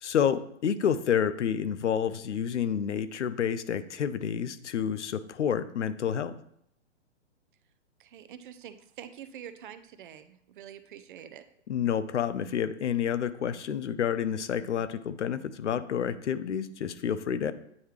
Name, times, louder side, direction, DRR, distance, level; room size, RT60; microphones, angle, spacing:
voice 1, 0.0-6.3 11.7-17.5, left 8 dB, 75° left, 13 dB, 0.6 m, -29 dB
voice 2, 8.0-11.4, right 9 dB, 45° right, 11 dB, 0.5 m, -46 dB
9.3 x 3.3 x 3.2 m, 0.71 s
figure-of-eight pair, 125°, 36 cm